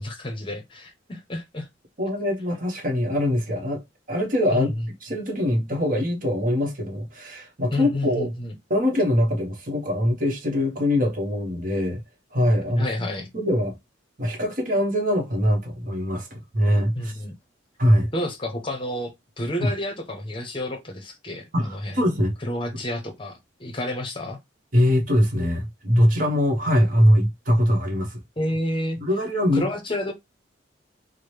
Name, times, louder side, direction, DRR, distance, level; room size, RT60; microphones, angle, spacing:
voice 1, 0.0-1.7 4.5-4.9 7.7-8.5 12.7-13.3 17.0-17.3 18.1-22.0 22.4-24.4 28.4-29.0 29.5-30.1, left 1 dB, 25° left, 0.7 m, -30 dB
voice 2, 2.0-3.8 4.1-4.7 5.0-8.3 8.7-12.0 12.3-13.1 13.3-13.8 14.2-17.1 17.8-18.1 19.6-19.7 21.5-22.3 24.7-28.2 29.0-29.6, equal, 45° right, 1.1 m, -22 dB
4.8 x 2.1 x 3.2 m
head